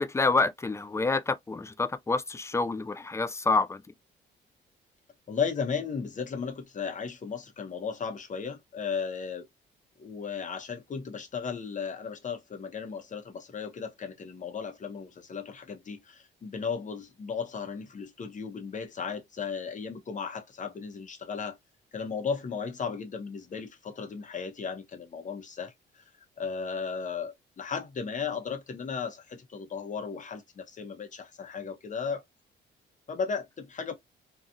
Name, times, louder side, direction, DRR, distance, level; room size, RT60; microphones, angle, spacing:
voice 1, 0.0-3.8, left 3 dB, 15° left, 0.3 m, -27 dB
voice 2, 5.3-9.5 10.0-21.6 21.9-25.7 26.4-32.2 33.1-33.9, left 6 dB, 40° left, 0.9 m, -35 dB
2.7 x 2.4 x 2.5 m
cardioid pair, 90°, 20 cm